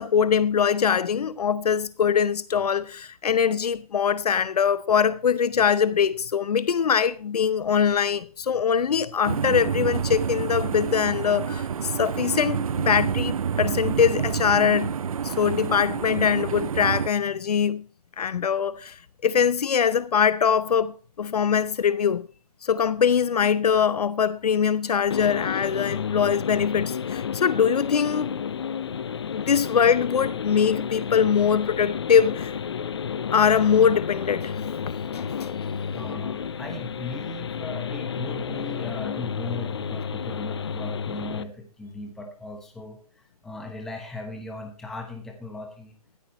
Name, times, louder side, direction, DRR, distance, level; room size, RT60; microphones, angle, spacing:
voice 1, 0.0-14.9 15.2-17.8 18.2-22.3 22.6-28.3 29.3-32.6 33.3-34.5 34.9-35.6, left 7 dB, 80° left, 0.7 m, -22 dB
sound 1, 9.2-17.1, right 7 dB, 65° right, 0.6 m, -28 dB
sound 2, 25.1-41.4, left 7 dB, 45° left, 0.8 m, -31 dB
voice 2, 35.9-43.0 43.4-45.9, left 2 dB, ahead, 0.9 m, -37 dB
14.0 x 13.0 x 3.1 m
hypercardioid pair, 175°, 20 cm